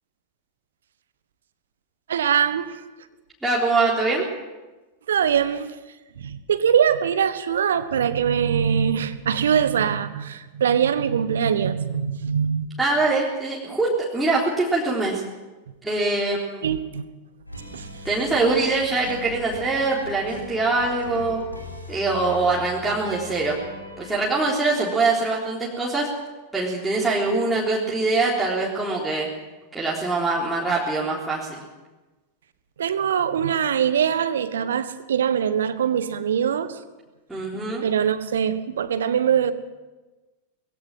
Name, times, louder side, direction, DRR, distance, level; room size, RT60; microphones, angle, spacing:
voice 1, 2.1-2.8 5.1-5.7 6.2-12.7 16.6-17.0 17.7-17.9 32.8-36.8 37.8-39.5, right 8 dB, 65° right, 13 dB, 1.3 m, -22 dB
voice 2, 3.4-4.2 12.8-15.2 15.8-16.6 18.0-21.4 21.9-23.6 24.0-26.1 26.5-29.3 29.7-31.6 37.3-37.8, right 3 dB, 5° right, -6 dB, 3.7 m, -23 dB
sound 1, 17.5-24.3, left 1 dB, 85° left, 3.8 m, -40 dB
21.0 x 17.0 x 7.7 m, 1.2 s
figure-of-eight pair, 90°, 0 cm